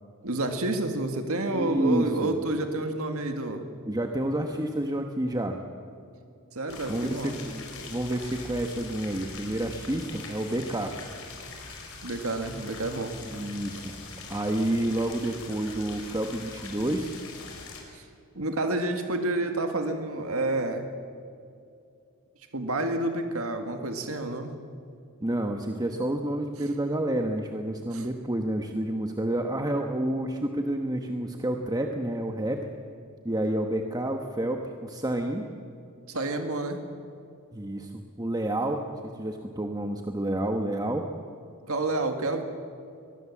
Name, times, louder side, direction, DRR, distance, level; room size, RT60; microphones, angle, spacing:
voice 1, 0.2-3.6 6.5-7.4 12.0-13.2 17.9-18.0 18.4-20.9 22.5-24.5 27.9-28.1 36.1-36.8 41.7-42.4, right 2 dB, 70° right, 6 dB, 1.9 m, -29 dB
voice 2, 1.5-2.3 3.9-5.6 6.9-7.6 7.9-10.9 13.3-14.0 14.3-17.1 25.2-32.6 33.2-35.4 37.5-41.1, right 1 dB, 20° right, 4 dB, 1.1 m, -29 dB
sound 1, 6.7-17.8, left 3 dB, 70° left, 4.9 m, -42 dB
23.5 x 19.5 x 7.4 m, 2.4 s
head